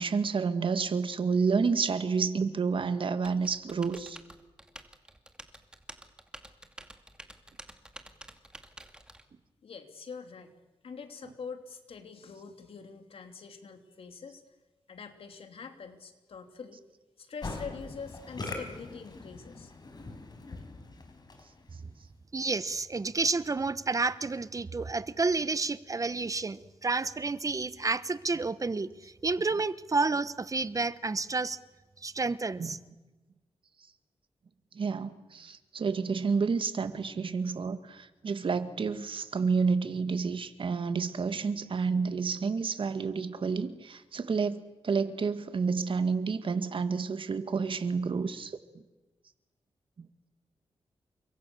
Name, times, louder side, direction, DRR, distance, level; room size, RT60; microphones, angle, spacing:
voice 1, 0.0-4.2 32.6-32.7 34.7-48.8 50.0-50.1, right 5 dB, 60° right, 10 dB, 2.0 m, -30 dB
Typing, 3.2-9.2, right 1 dB, 10° right, 2.6 m, -49 dB
voice 2, 9.6-10.5 10.8-14.4 14.9-16.8 17.2-19.7, left 5 dB, 75° left, 6 dB, 3.2 m, -44 dB
Musical instrument, 17.4-21.7, left 3 dB, 45° left, 4.9 m, -42 dB
voice 3, 22.3-31.6 32.0-32.8, right 3 dB, 35° right, 15 dB, 1.1 m, -30 dB
30.0 x 24.5 x 7.1 m, 1.1 s
cardioid pair, 75°, 10 cm